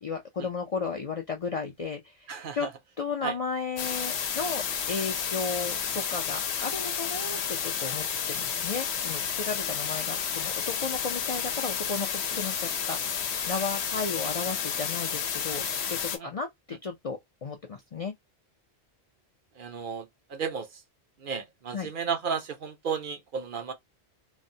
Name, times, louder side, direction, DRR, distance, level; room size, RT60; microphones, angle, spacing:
voice 1, 0.0-2.3 2.5-2.7 3.0-13.0 13.5-18.1 21.7-21.9, left 4 dB, 55° left, 0.4 m, -34 dB
voice 2, 2.3-2.7 3.2-3.4 16.2-16.3 19.6-20.8 21.2-23.7, right 6 dB, 60° right, 0.7 m, -33 dB
sound 1, 3.8-16.2, left 7 dB, 80° left, 0.9 m, -31 dB
3.2 x 2.0 x 2.6 m
omnidirectional pair, 1.1 m